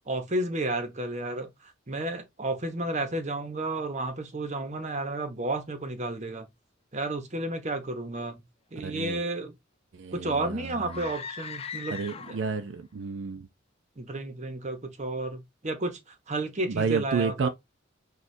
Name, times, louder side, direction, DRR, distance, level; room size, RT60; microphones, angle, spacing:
voice 1, 0.1-1.5 1.9-6.5 6.9-8.4 8.7-9.5 10.1-12.5 14.0-17.5, right 2 dB, 35° right, 0.8 m, -32 dB
voice 2, 8.8-9.2 9.9-11.0 11.9-13.5 16.7-17.5, right 5 dB, 65° right, 0.4 m, -31 dB
sound 1, 10.8-12.6, left 6 dB, 30° left, 0.4 m, -39 dB
6.2 x 2.3 x 2.6 m
head